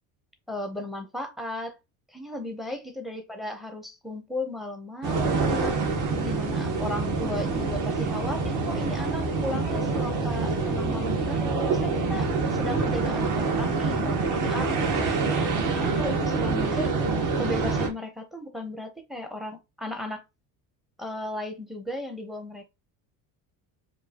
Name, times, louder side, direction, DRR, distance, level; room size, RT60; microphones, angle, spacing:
voice 1, 0.5-1.8 2.1-16.9 17.4-20.2 21.0-22.7, left 1 dB, ahead, 0.5 m, -36 dB
sound 1, 5.0-17.9, right 4 dB, 50° right, 1.2 m, -26 dB
5.2 x 2.3 x 2.7 m
cardioid pair, 160°, 39 cm